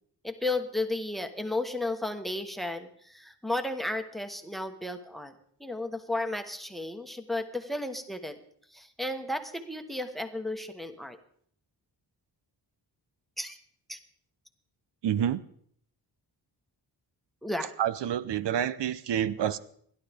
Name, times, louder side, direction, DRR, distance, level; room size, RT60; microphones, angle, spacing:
voice 1, 0.2-5.3 5.6-8.4 8.7-11.2 13.4-13.6 13.9-14.0 17.4-17.7, left 2 dB, ahead, 8 dB, 1.2 m, -33 dB
voice 2, 15.0-15.4 17.8-19.6, right 10 dB, 85° right, 15 dB, 0.7 m, -28 dB
29.0 x 11.5 x 3.5 m, 0.63 s
wide cardioid pair, 135°, 41 cm